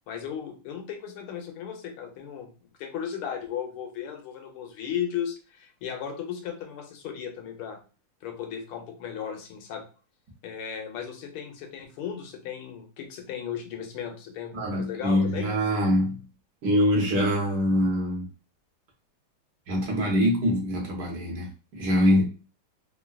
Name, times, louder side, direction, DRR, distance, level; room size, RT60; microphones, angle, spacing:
voice 1, 0.1-2.5 2.8-7.8 8.2-9.9 10.4-15.5, left 8 dB, 85° left, 1.6 m, -36 dB
voice 2, 14.5-16.3 16.6-18.2 19.7-22.2, equal, 55° right, 1.3 m, -24 dB
3.7 x 2.3 x 2.3 m
omnidirectional pair, 2.4 m